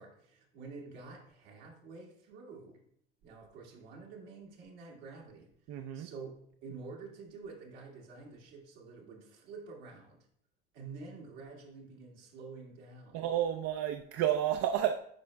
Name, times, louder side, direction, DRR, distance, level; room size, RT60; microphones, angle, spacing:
voice 1, 0.0-2.8 3.2-10.3 10.7-13.2, right 4 dB, 75° right, -1 dB, 1.9 m, -49 dB
voice 2, 5.7-6.1 13.1-15.0, right 10 dB, 55° right, 5 dB, 0.5 m, -31 dB
8.8 x 5.0 x 2.2 m, 0.68 s
hypercardioid pair, 75°, 29 cm